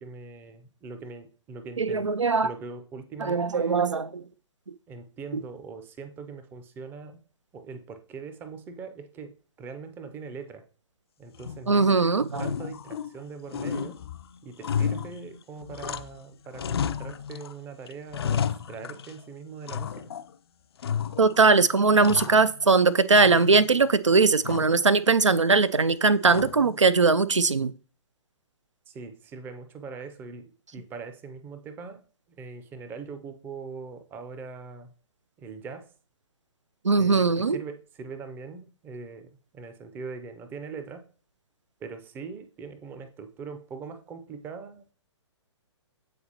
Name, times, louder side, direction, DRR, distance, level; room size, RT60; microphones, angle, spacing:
voice 1, 0.0-2.1 2.4-4.0 4.9-7.2 7.5-9.3 9.6-10.6 11.2-11.9 12.4-14.0 14.4-20.1 28.9-30.4 30.7-32.0 32.3-34.9 35.4-35.9 36.9-41.0 41.8-44.9, right 5 dB, 15° right, 0.5 m, -41 dB
voice 2, 1.8-2.5 3.2-4.2 5.3-5.4 11.7-12.4 21.2-27.7 36.8-37.6, right 4 dB, 85° right, 0.4 m, -20 dB
sound 1, 11.4-11.9 12.3-13.2 13.5-16.2 16.5-17.5 17.9-19.2 19.7-20.3 20.8-21.4 21.8-22.8 23.2-23.9 24.4-24.9 26.3-26.8, left 7 dB, 55° left, 0.4 m, -32 dB
8.3 x 4.0 x 2.9 m
figure-of-eight pair, 120°, 15 cm